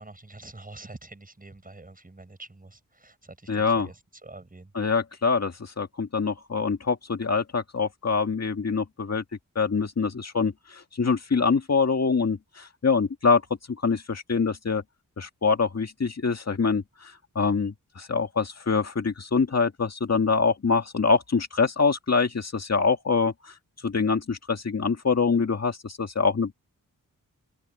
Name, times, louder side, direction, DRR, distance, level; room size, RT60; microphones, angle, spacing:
voice 1, 0.0-4.7, right 2 dB, 25° right, 6.2 m, -46 dB
voice 2, 3.5-3.9 4.7-9.2 9.6-13.4 13.8-14.8 15.2-23.5 23.8-26.5, left 5 dB, 50° left, 2.1 m, -25 dB
wide cardioid pair, 100°, 34 cm